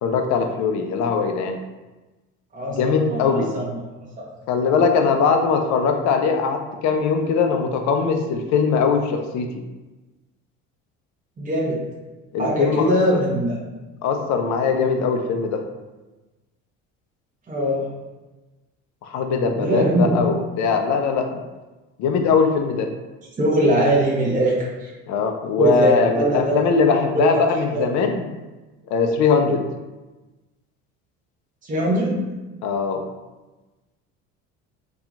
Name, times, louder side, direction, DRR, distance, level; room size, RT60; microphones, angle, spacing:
voice 1, 0.0-1.6 2.7-3.5 4.5-9.5 12.3-13.2 14.0-15.6 19.0-21.4 22.0-22.9 25.1-28.3 28.9-29.7 32.6-33.0, left 5 dB, 55° left, 5 dB, 0.5 m, -21 dB
voice 2, 2.5-3.8 4.2-4.3 11.4-11.9 12.4-13.5 17.5-17.9 19.6-20.2 23.4-24.9 25.6-26.4 27.1-27.4 27.7-27.8 31.6-32.3, right 1 dB, 25° right, -6 dB, 0.9 m, -21 dB
2.7 x 2.4 x 2.5 m, 1.1 s
hypercardioid pair, 75°, 34 cm